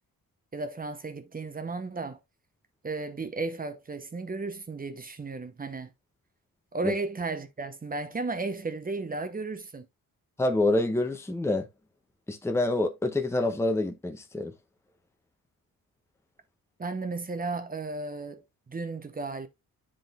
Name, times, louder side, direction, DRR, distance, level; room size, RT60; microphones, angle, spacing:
voice 1, 0.5-2.2 2.8-5.9 6.7-9.9 16.8-19.5, right 3 dB, 25° right, 0.9 m, -34 dB
voice 2, 10.4-11.7 12.3-14.5, left 2 dB, 5° left, 0.8 m, -27 dB
10.0 x 3.8 x 2.4 m
cardioid pair, 95°, 35 cm